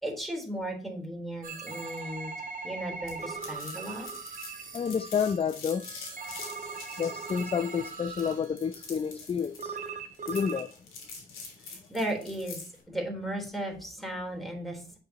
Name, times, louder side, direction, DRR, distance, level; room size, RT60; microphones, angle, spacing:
voice 1, 0.0-2.3 2.6-4.1 11.7-12.6 12.9-15.0, right 1 dB, ahead, 3.5 m, -35 dB
sound 1, 1.4-8.7 9.6-10.7, right 5 dB, 40° right, 1.3 m, -40 dB
sound 2, 3.1-12.8, left 4 dB, 70° left, 3.3 m, -45 dB
voice 2, 4.7-5.9 7.0-9.8 10.3-10.7 11.7-11.8, left 7 dB, 30° left, 0.4 m, -30 dB
8.1 x 6.9 x 2.9 m
cardioid pair, 80°, 21 cm